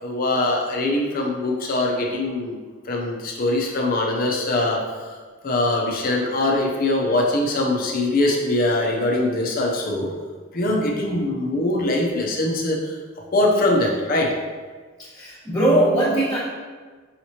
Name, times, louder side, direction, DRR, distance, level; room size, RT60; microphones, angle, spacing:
voice 1, 0.0-2.6 2.9-5.1 5.4-10.1 10.5-12.8 13.3-14.3, left 2 dB, 40° left, -1 dB, 0.6 m, -22 dB
voice 2, 15.1-16.4, right 1 dB, 20° left, -13 dB, 1.1 m, -19 dB
5.7 x 2.9 x 2.8 m, 1.4 s
head